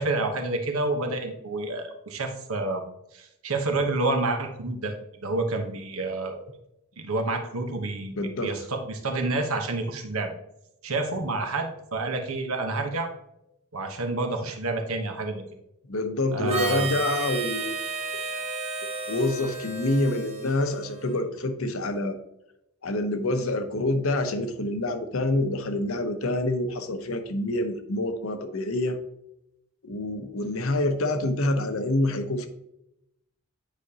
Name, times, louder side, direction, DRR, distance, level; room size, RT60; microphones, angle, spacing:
voice 1, 0.0-2.8 3.1-4.9 5.2-6.4 7.0-10.3 10.8-13.1 13.7-15.4 16.3-17.0, right 2 dB, 80° right, 4 dB, 1.1 m, -29 dB
voice 2, 8.1-8.5 15.9-17.8 19.1-22.2 22.8-29.0 29.8-32.5, left 2 dB, 75° left, 8 dB, 0.8 m, -27 dB
Harmonica, 16.5-21.2, right 3 dB, 30° right, 1.1 m, -33 dB
9.0 x 5.0 x 2.8 m, 0.84 s
head